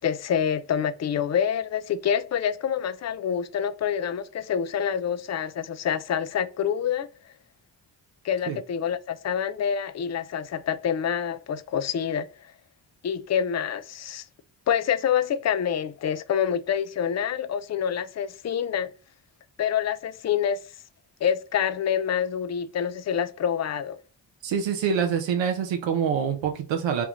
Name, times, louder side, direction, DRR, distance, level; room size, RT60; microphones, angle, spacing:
voice 1, 0.0-7.1 8.2-12.3 13.0-14.2 14.7-18.9 19.6-20.6 21.2-24.0, left 8 dB, 40° left, 0.5 m, -27 dB
voice 2, 24.4-27.1, right 7 dB, 85° right, 0.9 m, -25 dB
7.0 x 2.4 x 3.1 m
supercardioid pair, 55°, 44 cm